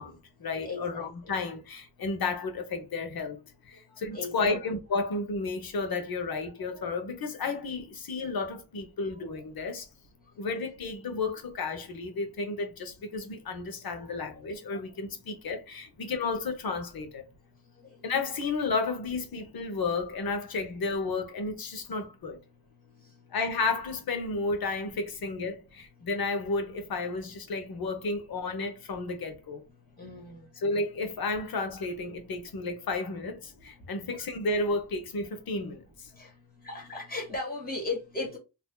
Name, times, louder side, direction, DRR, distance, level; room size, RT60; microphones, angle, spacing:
voice 1, 0.0-3.4 3.7-9.9 10.4-17.2 18.0-22.4 23.3-29.6 30.6-36.1, left 3 dB, 55° left, 0.9 m, -32 dB
voice 2, 0.6-1.3 4.1-4.6 6.7-6.9 14.0-14.2 14.7-14.8 30.0-30.4 34.1-34.3 36.2-36.3 36.6-38.4, left 3 dB, 20° left, 2.0 m, -37 dB
4.2 x 2.8 x 2.2 m
wide cardioid pair, 165°, 44 cm